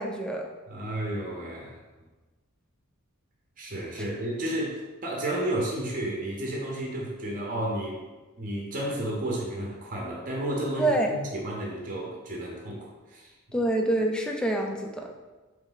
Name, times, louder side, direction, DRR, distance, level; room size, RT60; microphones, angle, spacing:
voice 1, 0.0-0.5 10.8-11.1 13.5-15.1, right 1 dB, 5° left, 1 dB, 0.3 m, -26 dB
voice 2, 0.7-1.8 3.6-8.0 8.4-13.6, right 1 dB, 40° right, -2 dB, 0.8 m, -32 dB
4.0 x 3.2 x 3.9 m, 1.2 s
head